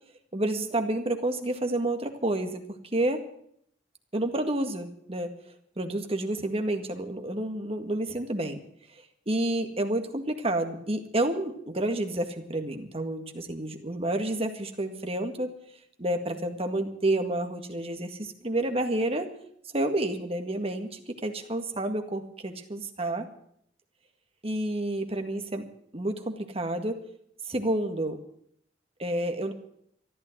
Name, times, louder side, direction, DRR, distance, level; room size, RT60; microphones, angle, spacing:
voice 1, 0.3-2.6 2.9-3.2 4.1-5.3 5.8-8.6 9.3-15.5 16.0-19.3 19.7-23.3 24.4-25.7 25.9-27.1 27.5-28.2 29.0-29.5, right 1 dB, 35° right, 6 dB, 1.9 m, -29 dB
14.5 x 12.0 x 7.9 m, 0.68 s
head